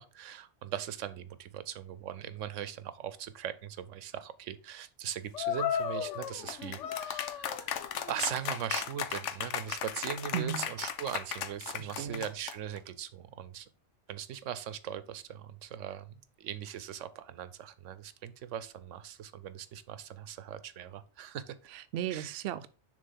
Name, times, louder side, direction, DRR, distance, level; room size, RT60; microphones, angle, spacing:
voice 1, 0.0-13.7 14.1-21.7 22.1-22.3, right 10 dB, 85° right, 1.0 m, -40 dB
sound 1, 5.3-12.8, left 9 dB, 80° left, 1.0 m, -35 dB
voice 2, 10.3-10.7 11.8-12.2 21.7-22.7, right 9 dB, 65° right, 0.7 m, -36 dB
6.7 x 3.4 x 5.4 m
omnidirectional pair, 1.2 m